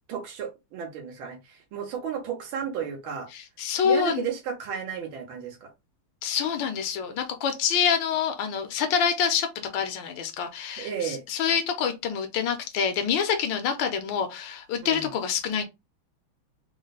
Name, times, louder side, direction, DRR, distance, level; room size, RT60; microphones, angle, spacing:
voice 1, 0.1-3.3 3.8-5.7 10.8-11.2 14.8-15.1, right 8 dB, 80° right, 1.7 m, -33 dB
voice 2, 3.3-4.2 6.2-9.5 9.7-15.6, left 7 dB, 70° left, 1.5 m, -26 dB
3.9 x 2.2 x 4.0 m
omnidirectional pair, 2.2 m